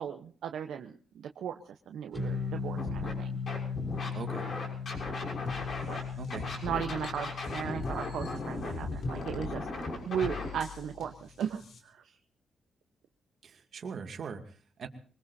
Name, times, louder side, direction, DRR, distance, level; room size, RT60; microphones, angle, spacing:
voice 1, 0.0-3.3 5.8-6.0 6.6-9.7 10.0-12.0 14.0-14.1, right 8 dB, 80° right, 4 dB, 1.0 m, -37 dB
sound 1, 2.1-9.0, left 5 dB, 5° left, 3.5 m, -38 dB
Scratching (performance technique), 2.8-3.1 3.5-6.0 6.3-10.5, left 2 dB, 55° left, 6.4 m, -37 dB
voice 2, 4.1-4.5 6.2-6.5 13.4-14.9, right 6 dB, 60° right, 4 dB, 2.4 m, -41 dB
sound 2, 5.5-11.8, left 5 dB, 70° left, 3.7 m, -44 dB
24.0 x 20.5 x 2.8 m, 0.43 s
cardioid pair, 80°, 0 cm